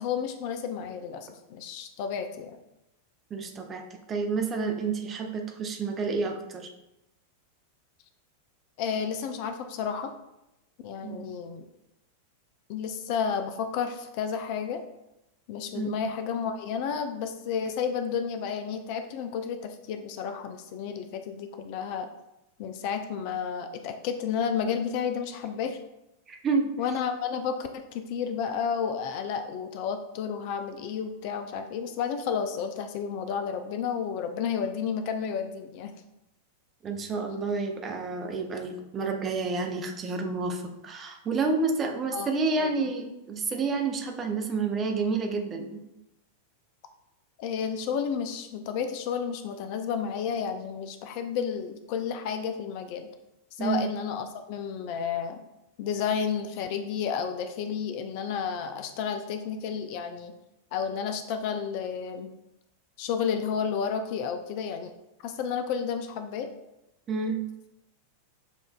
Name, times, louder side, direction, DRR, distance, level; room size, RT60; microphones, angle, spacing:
voice 1, 0.0-2.6 8.8-10.1 10.8-11.6 12.7-14.8 15.5-22.1 22.6-25.8 26.8-35.9 42.1-42.8 47.4-53.1 53.6-55.4 55.8-60.3 60.7-62.3 63.0-64.9 65.2-66.5, left 7 dB, 45° left, 7 dB, 0.3 m, -31 dB
voice 2, 3.3-6.7 11.0-11.3 15.7-15.9 26.3-26.7 36.8-45.8 53.6-53.8 67.1-67.4, right 4 dB, 25° right, 3 dB, 0.7 m, -29 dB
6.9 x 2.5 x 2.3 m, 0.90 s
figure-of-eight pair, 90°, 0 cm